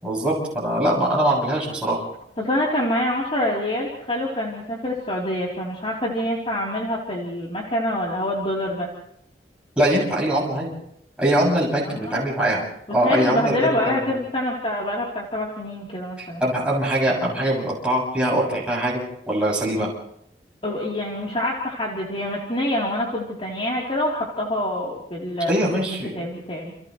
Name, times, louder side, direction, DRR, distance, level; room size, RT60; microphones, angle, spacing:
voice 1, 0.0-2.0 9.8-10.7 11.2-12.6 12.9-13.6 13.9-14.0 16.2-19.9 25.5-26.1, right 1 dB, 5° right, -6 dB, 7.0 m, -22 dB
voice 2, 2.4-8.9 11.8-12.2 12.9-16.4 20.6-25.5 26.1-26.7, left 1 dB, 30° left, -3 dB, 3.6 m, -26 dB
29.5 x 29.5 x 3.2 m, 0.73 s
head